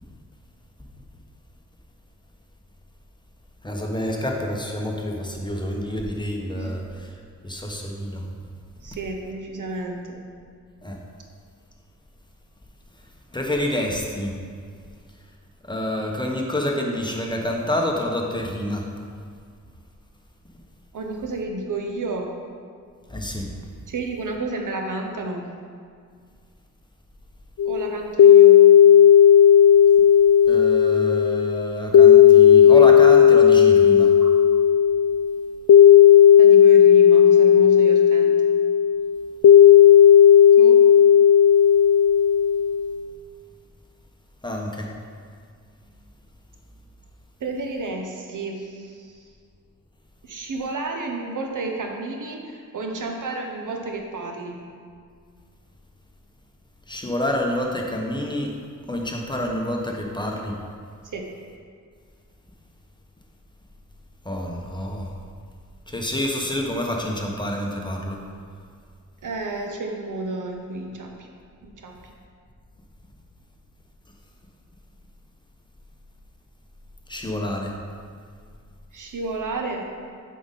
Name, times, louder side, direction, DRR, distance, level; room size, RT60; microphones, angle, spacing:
voice 1, 3.6-7.2 7.4-8.3 10.8-11.0 13.3-14.4 15.7-18.9 23.1-23.5 30.5-34.1 44.4-44.9 56.9-58.6 58.9-60.6 64.2-65.1 65.9-68.2 77.1-77.8, left 1 dB, 15° left, 0 dB, 1.1 m, -28 dB
voice 2, 8.8-10.2 20.9-22.4 23.9-25.5 27.6-28.6 34.2-34.3 36.4-38.4 40.6-40.8 47.4-49.3 50.2-54.7 61.1-61.2 69.2-71.3 71.6-72.0 78.9-79.9, right 3 dB, 75° right, 2 dB, 1.0 m, -31 dB
sound 1, 27.6-43.0, left 9 dB, 70° left, 0.5 m, -13 dB
7.9 x 5.2 x 4.1 m, 2.1 s
cardioid pair, 75°, 32 cm